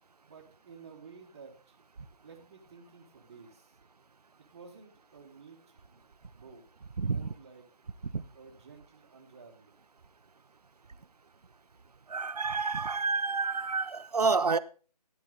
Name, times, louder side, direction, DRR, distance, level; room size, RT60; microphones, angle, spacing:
voice 1, 0.2-1.8 2.2-3.8 4.5-6.0 6.3-6.7 7.0-7.6 8.0-9.8, right 5 dB, 25° right, 1.4 m, -53 dB
voice 2, 12.1-14.6, right 4 dB, 70° right, 0.8 m, -29 dB
15.0 x 9.5 x 3.8 m
figure-of-eight pair, 165°, 21 cm